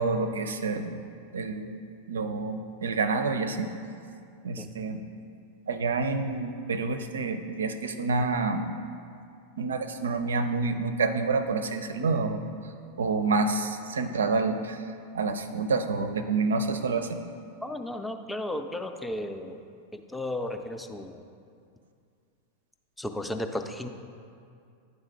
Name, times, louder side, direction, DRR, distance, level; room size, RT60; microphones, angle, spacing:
voice 1, 0.0-1.8 2.1-3.7 4.4-5.1 5.7-8.7 9.6-12.4 13.0-17.2, right 4 dB, 70° right, 9 dB, 0.5 m, -28 dB
voice 2, 17.6-19.6 19.9-21.2 23.0-23.9, left 1 dB, 5° left, 6 dB, 0.4 m, -34 dB
9.9 x 4.0 x 4.8 m, 2.4 s
figure-of-eight pair, 90°, 0 cm